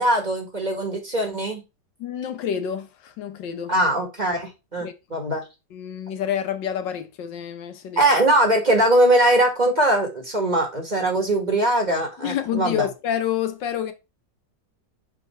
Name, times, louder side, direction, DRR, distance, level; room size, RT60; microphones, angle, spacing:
voice 1, 0.0-1.6 3.7-5.4 8.0-12.9, right 1 dB, 25° right, 1.5 m, -21 dB
voice 2, 2.0-3.7 4.8-4.9 5.7-8.0 12.2-13.9, left 9 dB, 85° left, 1.6 m, -28 dB
5.2 x 4.7 x 4.2 m
omnidirectional pair, 1.9 m